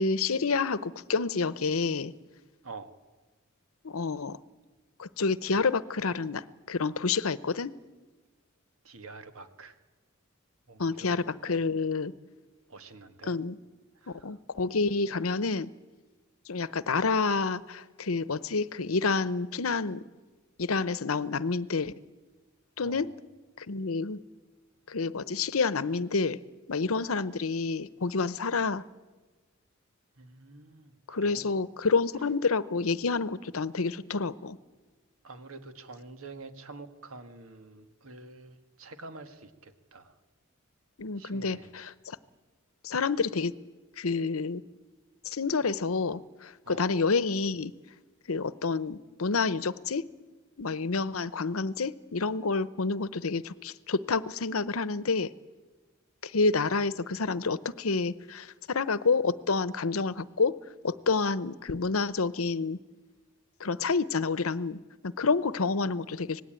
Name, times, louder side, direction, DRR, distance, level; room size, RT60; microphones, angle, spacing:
voice 1, 0.0-2.1 3.8-4.4 5.0-7.7 10.8-12.1 13.3-13.6 14.1-15.7 16.5-20.0 20.6-21.9 22.8-23.1 23.6-24.2 24.9-26.4 26.7-28.8 31.1-34.6 41.0-42.2 42.8-43.5 44.0-44.6 45.2-47.7 48.3-50.1 50.6-55.3 56.2-60.6 60.8-62.8 63.6-66.4, left 4 dB, 90° left, 17 dB, 0.9 m, -29 dB
voice 2, 8.8-9.8 10.7-11.6 12.7-13.3 14.0-14.3 22.8-23.1 30.2-31.5 35.2-40.2 41.2-41.7 46.6-46.9, right 3 dB, 90° right, 9 dB, 1.8 m, -47 dB
25.5 x 19.0 x 9.0 m, 1.2 s
head